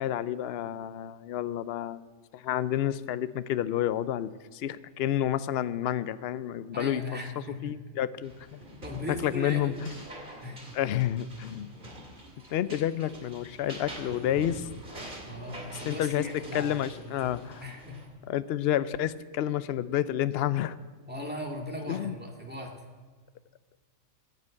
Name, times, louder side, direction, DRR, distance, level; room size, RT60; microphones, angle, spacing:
voice 1, 0.0-2.0 2.3-7.0 7.6-8.6 9.2-10.0 10.7-11.7 12.5-14.7 15.9-16.3 16.5-17.6 18.3-20.8 21.9-22.2, left 11 dB, 65° left, 15 dB, 0.6 m, -30 dB
voice 2, 6.7-7.7 8.8-9.8 10.4-10.8 15.3-16.8 17.1-17.3 17.6-18.0 21.1-22.7, left 1 dB, 5° right, 0 dB, 1.9 m, -38 dB
sound 1, 8.2-18.1, right 1 dB, 35° right, 2.5 m, -45 dB
14.5 x 6.9 x 8.6 m, 1.5 s
omnidirectional pair, 1.4 m